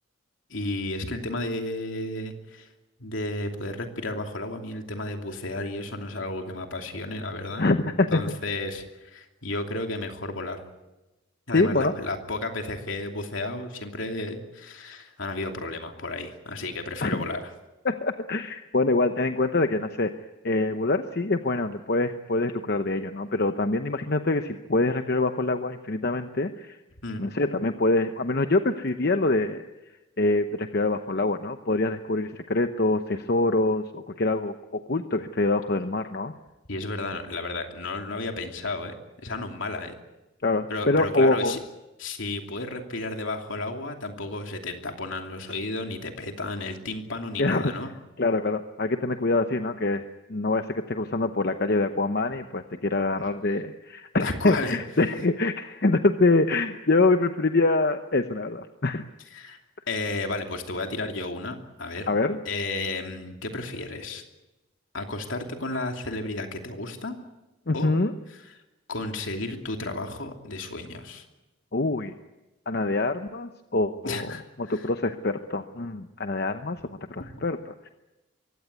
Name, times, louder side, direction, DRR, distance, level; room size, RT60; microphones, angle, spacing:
voice 1, 0.5-2.7 3.0-10.6 11.5-17.5 27.0-27.2 36.7-39.9 40.7-41.6 42.0-48.0 54.2-54.8 59.3-59.6 59.9-62.1 62.4-64.2 64.9-67.1 67.7-67.9 68.3-68.4 68.9-71.2 74.0-74.9 77.2-77.3, left 2 dB, 75° left, 3 dB, 2.9 m, -33 dB
voice 2, 7.6-8.2 11.5-11.9 17.0-17.2 17.8-20.1 20.4-26.8 27.2-29.6 30.2-34.6 34.9-36.3 40.4-41.6 47.4-47.6 48.2-50.0 50.3-59.0 62.1-62.4 67.7-68.1 71.7-72.1 72.7-76.8 77.1-77.9, left 2 dB, 50° left, 8 dB, 0.8 m, -25 dB
23.5 x 16.5 x 9.5 m, 1.0 s
head